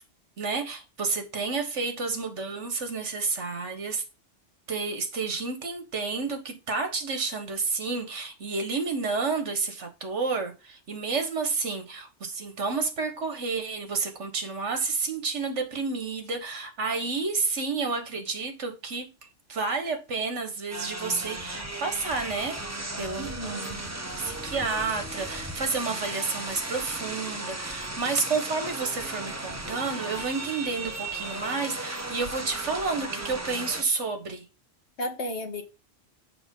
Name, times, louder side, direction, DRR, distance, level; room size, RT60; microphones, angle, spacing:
voice 1, 0.4-4.0 4.7-19.1 19.5-22.6 23.0-23.8 24.1-34.4, right 4 dB, 70° right, 1.7 m, -30 dB
sound 1, 20.7-33.8, right 2 dB, 15° right, 0.9 m, -36 dB
voice 2, 23.2-23.7 35.0-35.6, left 1 dB, 60° left, 1.6 m, -33 dB
7.1 x 5.4 x 3.8 m
omnidirectional pair, 1.3 m